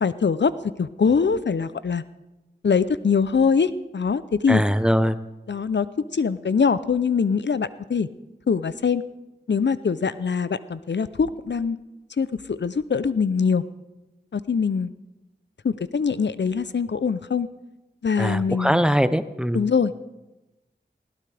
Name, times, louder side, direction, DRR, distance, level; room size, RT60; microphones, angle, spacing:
voice 1, 0.0-0.5 0.8-2.0 2.6-4.6 5.5-5.9 6.1-8.1 8.5-9.0 9.5-11.8 12.2-13.6 14.3-14.9 15.6-17.5 18.0-18.8 19.5-20.1, left 5 dB, 80° left, 15 dB, 0.5 m, -23 dB
voice 2, 4.5-5.2 18.2-19.6, equal, 5° right, 13 dB, 0.6 m, -21 dB
19.5 x 16.5 x 3.4 m, 1.0 s
wide cardioid pair, 45°, 18 cm